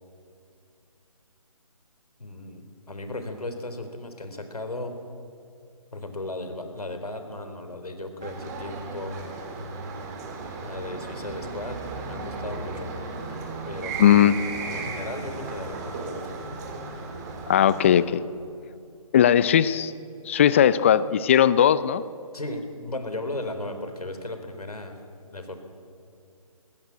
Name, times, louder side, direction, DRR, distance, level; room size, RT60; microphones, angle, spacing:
voice 1, 2.2-5.0 5.9-9.3 10.6-12.9 13.7-14.3 14.7-16.3 22.3-25.0 25.3-25.6, left 2 dB, 85° left, 6 dB, 3.9 m, -36 dB
sound 1, 8.2-18.0, right 3 dB, 30° right, 3.0 m, -35 dB
voice 2, 14.0-14.4 17.5-18.2 19.1-19.9 20.3-22.0, left 10 dB, 20° left, 17 dB, 0.4 m, -18 dB
20.0 x 17.0 x 9.9 m, 2.5 s
figure-of-eight pair, 150°, 19 cm